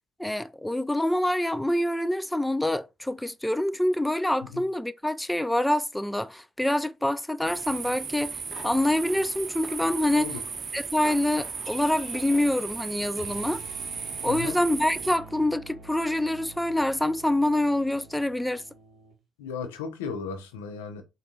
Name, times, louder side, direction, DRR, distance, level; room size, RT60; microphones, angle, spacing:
voice 1, 0.2-10.3 10.7-13.6 14.2-18.6, left 1 dB, 5° left, 0.3 m, -26 dB
sound 1, 7.4-15.2, right 6 dB, 50° right, 0.5 m, -36 dB
sound 2, 8.1-13.2, left 2 dB, 25° left, 1.1 m, -47 dB
sound 3, 13.1-19.2, right 3 dB, 65° right, 1.2 m, -47 dB
voice 2, 19.4-21.0, left 6 dB, 90° left, 0.6 m, -35 dB
3.9 x 2.6 x 3.7 m
hypercardioid pair, 50°, 0 cm